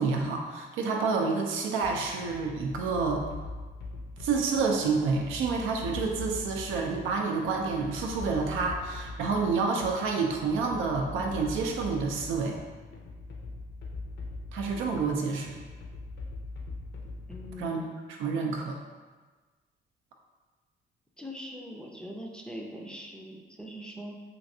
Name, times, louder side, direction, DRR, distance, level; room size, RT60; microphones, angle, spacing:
voice 1, 0.0-3.3 4.2-12.6 14.5-15.6 17.6-17.8 18.2-18.8, right 4 dB, 90° right, 1 dB, 0.5 m, -29 dB
sound 1, 1.8-17.7, left 3 dB, 65° left, 0.5 m, -42 dB
voice 2, 17.3-17.8 21.2-24.2, equal, 5° left, -1 dB, 0.4 m, -42 dB
3.1 x 2.6 x 2.6 m, 1.3 s
cardioid pair, 90°, 20 cm